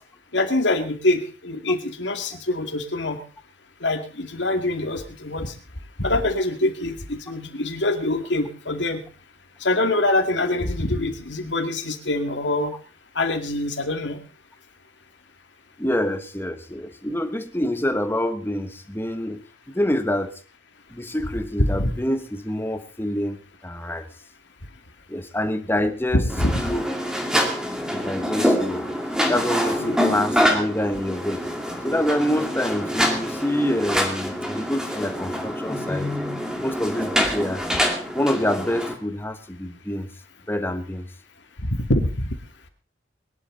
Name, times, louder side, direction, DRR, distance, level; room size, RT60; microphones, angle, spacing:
voice 1, 0.3-3.2 3.8-5.5 6.0-9.0 9.6-12.7 13.2-14.2 21.6-21.9 26.1-26.6 29.8-30.0 41.7-42.3, left 2 dB, 80° left, 6 dB, 2.3 m, -24 dB
voice 2, 15.8-19.4 19.7-20.3 20.9-24.1 25.1-26.2 26.6-26.8 27.9-28.9 29.3-31.4 31.8-36.1 36.6-37.6 38.1-40.1 40.5-41.1, left 1 dB, 10° left, 9 dB, 1.3 m, -26 dB
sound 1, 26.3-38.9, equal, 5° right, 2.2 m, -25 dB
21.5 x 11.5 x 4.0 m, 0.35 s
head